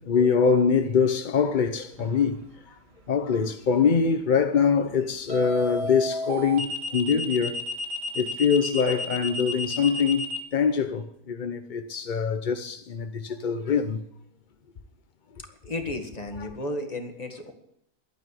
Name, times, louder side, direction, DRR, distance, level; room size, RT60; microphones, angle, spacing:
voice 1, 0.0-2.4 2.7-2.8 3.1-7.6 8.1-14.0 16.4-16.5, left 6 dB, 55° left, 0.5 m, -24 dB
sound 1, 2.0-2.3 5.3-10.4, left 1 dB, 75° right, 2.1 m, -31 dB
voice 2, 15.7-17.5, left 1 dB, 25° left, 1.8 m, -33 dB
12.0 x 9.1 x 8.1 m
omnidirectional pair, 1.8 m